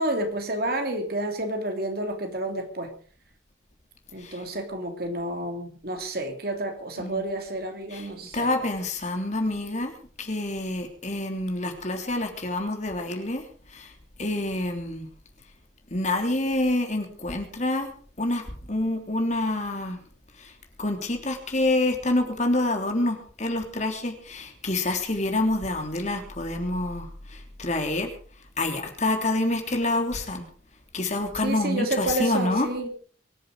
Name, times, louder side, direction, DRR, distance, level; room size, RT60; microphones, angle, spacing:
voice 1, 0.0-2.9 4.1-8.5 31.4-32.9, right 1 dB, 55° right, 5 dB, 3.2 m, -30 dB
voice 2, 8.3-13.4 13.7-13.9 14.2-15.1 15.9-17.9 18.2-20.0 20.4-20.5 20.8-28.1 28.6-30.4 30.9-32.7, left 2 dB, 40° left, 4 dB, 3.3 m, -27 dB
23.5 x 10.5 x 5.0 m, 0.43 s
head